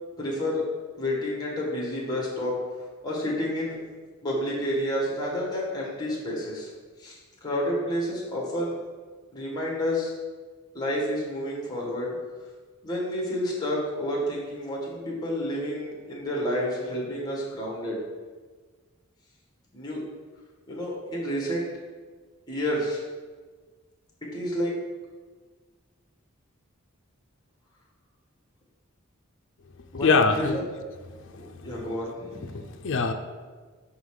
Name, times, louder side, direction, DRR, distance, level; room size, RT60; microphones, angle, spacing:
voice 1, 0.2-0.6 1.0-2.7 3.0-3.8 4.2-6.7 7.0-8.8 9.3-10.1 10.7-12.2 12.8-18.0 19.7-20.0 20.7-21.7 22.5-23.0 24.3-24.8 29.9-30.6 31.3-32.7, equal, 20° left, -3 dB, 1.5 m, -30 dB
voice 2, 30.0-30.6 31.4-31.7 32.5-33.1, left 4 dB, 60° left, 6 dB, 0.5 m, -23 dB
5.8 x 4.0 x 4.8 m, 1.4 s
head